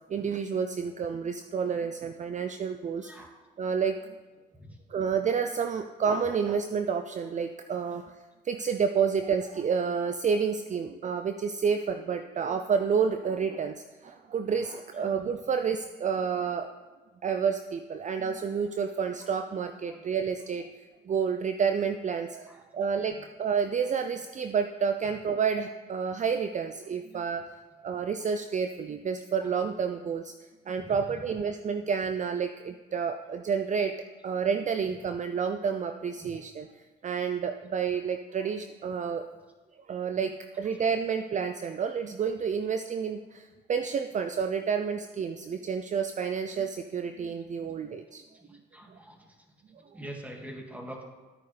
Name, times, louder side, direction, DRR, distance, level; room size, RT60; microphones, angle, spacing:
voice 1, 0.1-3.1 3.6-4.0 4.9-8.0 8.4-16.7 17.2-20.7 21.1-27.4 27.8-30.3 30.7-33.9 34.2-36.7 37.0-39.2 39.9-48.2 48.9-49.0, right 6 dB, 35° right, 7 dB, 0.6 m, -29 dB
voice 2, 3.0-3.3 4.5-4.8 15.0-15.1 19.9-20.0 22.5-22.6 23.1-23.2 29.4-29.5 30.7-31.0 36.2-36.3 48.4-49.3 49.9-51.0, right 1 dB, 5° right, 1 dB, 2.3 m, -44 dB
13.0 x 9.2 x 3.4 m, 1.2 s
hypercardioid pair, 55°, 20 cm